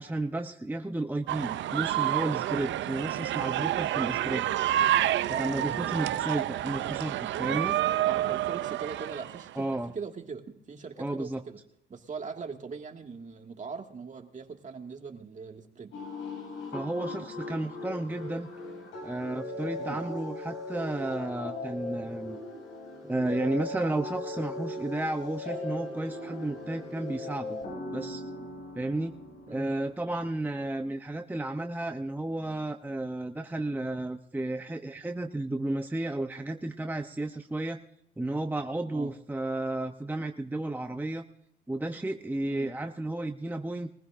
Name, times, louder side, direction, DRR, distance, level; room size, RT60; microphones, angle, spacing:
voice 1, 0.0-4.5 5.3-7.8 9.6-9.9 11.0-11.4 16.7-18.5 19.0-22.4 23.0-27.6 27.9-28.2 28.7-29.1 29.5-37.8 38.2-41.2 41.7-43.9, right 2 dB, 10° right, 6 dB, 0.7 m, -33 dB
sound 1, 1.3-9.5, right 13 dB, 70° right, 0.5 m, -29 dB
voice 2, 5.3-6.0 8.0-11.6 11.9-15.9 19.8-20.0 29.5-29.7 38.9-39.1 42.5-42.7, right 5 dB, 40° right, 4 dB, 2.0 m, -41 dB
sound 2, 15.9-30.9, left 2 dB, 90° left, 7.1 m, -39 dB
22.5 x 15.5 x 2.6 m, 0.76 s
cardioid pair, 90°, 20 cm